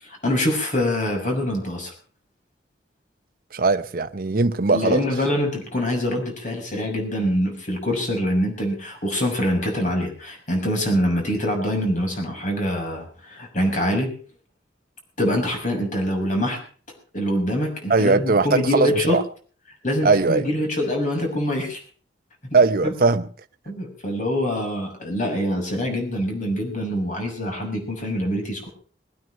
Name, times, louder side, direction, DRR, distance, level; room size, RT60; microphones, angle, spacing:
voice 1, 0.0-1.9 4.7-14.1 15.2-16.6 17.1-19.2 19.8-21.8 22.5-22.6 22.8-22.9 23.7-28.7, equal, 45° left, 6.2 m, -24 dB
voice 2, 3.5-5.0 17.9-19.2 20.0-20.4 22.5-23.3, right 3 dB, 55° right, 0.8 m, -19 dB
21.0 x 9.4 x 6.4 m
head